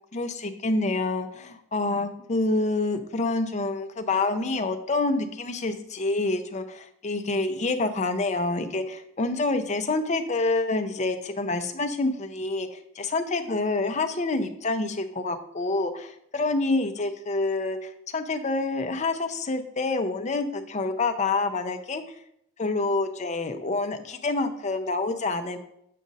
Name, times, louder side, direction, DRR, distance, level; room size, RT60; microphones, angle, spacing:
voice 1, 0.0-12.7 13.0-22.0 22.6-25.6, left 3 dB, 40° left, 7 dB, 0.6 m, -27 dB
7.5 x 5.1 x 4.0 m, 0.73 s
head